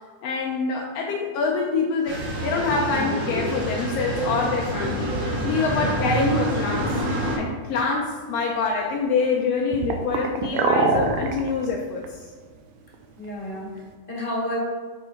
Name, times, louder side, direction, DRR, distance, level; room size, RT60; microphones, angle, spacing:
voice 1, 0.2-7.0 7.4-12.3, left 4 dB, 80° left, -1 dB, 1.4 m, -25 dB
sound 1, 2.0-7.4, right 1 dB, 40° right, 2.5 m, -27 dB
voice 2, 5.6-5.9 13.2-14.6, left 1 dB, 20° left, -4 dB, 1.5 m, -31 dB
sound 2, 8.3-8.4 8.7-8.8 9.7-11.7 12.0-12.1 12.9-13.0 13.3-13.4, right 4 dB, 75° right, 1.6 m, -23 dB
7.8 x 4.5 x 4.5 m, 1.5 s
omnidirectional pair, 3.6 m